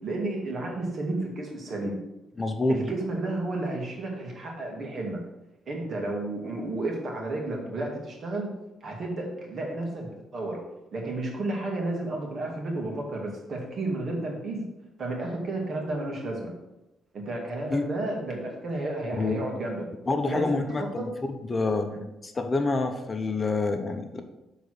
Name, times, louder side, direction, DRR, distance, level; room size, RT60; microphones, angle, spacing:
voice 1, 0.0-2.0 2.7-5.2 5.7-8.5 8.8-10.6 10.9-14.6 15.0-16.5 17.1-19.9 20.2-21.0 21.9-22.0, right 2 dB, 55° right, 0 dB, 2.3 m, -32 dB
voice 2, 2.4-2.8 17.7-17.9 19.2-19.5 20.1-21.1 21.5-21.9 22.2-24.2, left 3 dB, 25° left, 6 dB, 0.8 m, -27 dB
7.1 x 4.0 x 6.3 m, 0.95 s
cardioid pair, 90°, 0 cm